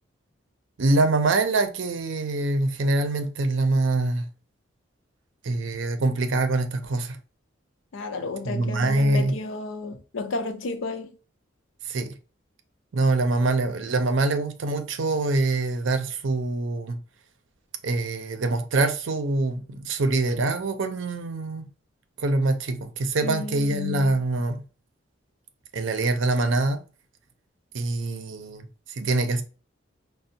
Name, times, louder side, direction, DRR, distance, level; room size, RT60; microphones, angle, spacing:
voice 1, 0.8-4.3 5.4-7.2 8.4-9.3 11.8-12.1 12.9-17.0 17.8-21.7 22.2-24.6 25.7-26.8 27.7-29.4, right 2 dB, 75° right, 0.5 m, -24 dB
voice 2, 7.9-11.1 23.2-24.2, left 3 dB, 80° left, 0.5 m, -32 dB
5.1 x 2.1 x 2.7 m
head